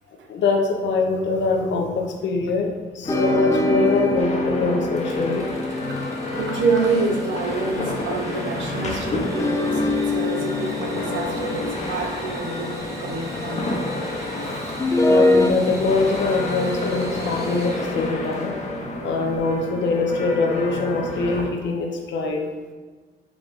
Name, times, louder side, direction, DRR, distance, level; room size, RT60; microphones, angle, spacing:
voice 1, 0.3-5.5 15.0-18.5 19.0-22.5, left 3 dB, 65° left, 2 dB, 0.7 m, -23 dB
sound 1, 3.0-21.4, left 2 dB, 35° left, 0.8 m, -30 dB
sound 2, 3.1-7.6 9.3-13.5 14.8-15.5, left 2 dB, 15° left, 0.4 m, -24 dB
Engine / Sawing, 5.0-18.6, right 1 dB, 15° right, 0.9 m, -39 dB
voice 2, 6.4-13.7 14.4-14.8 17.0-17.1, right 4 dB, 70° right, 3 dB, 0.7 m, -27 dB
4.7 x 2.5 x 3.6 m, 1.4 s
cardioid pair, 90°, 20 cm